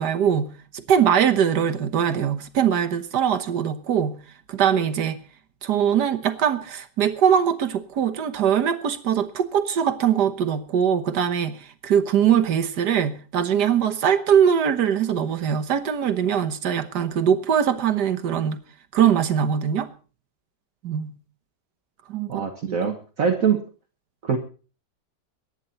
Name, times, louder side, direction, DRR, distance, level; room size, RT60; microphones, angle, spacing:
voice 1, 0.0-4.2 4.5-5.2 5.6-18.6 18.9-19.9 20.8-21.1 22.1-22.8, right 8 dB, 75° right, 9 dB, 1.7 m, -22 dB
voice 2, 22.3-23.6 24.2-24.4, right 7 dB, 55° right, 5 dB, 1.6 m, -23 dB
23.0 x 10.0 x 4.2 m, 0.37 s
omnidirectional pair, 1.8 m